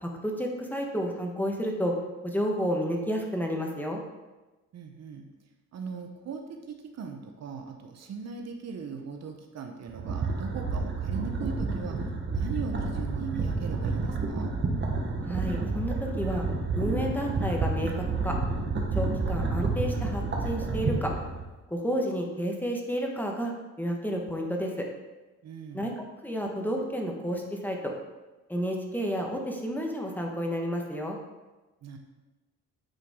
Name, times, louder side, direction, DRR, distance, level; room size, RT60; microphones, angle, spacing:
voice 1, 0.0-1.9 2.2-4.0 15.2-16.5 16.7-18.4 18.9-21.1 21.7-23.5 23.8-24.9 25.7-27.9 28.5-31.2, equal, 5° left, 1 dB, 1.3 m, -31 dB
voice 2, 4.7-5.3 5.7-12.0 12.3-14.5 25.4-25.9 31.8-32.0, right 5 dB, 60° right, 4 dB, 0.9 m, -39 dB
sound 1, 9.9-21.4, right 3 dB, 40° right, 1.3 m, -30 dB
9.1 x 4.7 x 3.7 m, 1.1 s
cardioid pair, 90°, 30 cm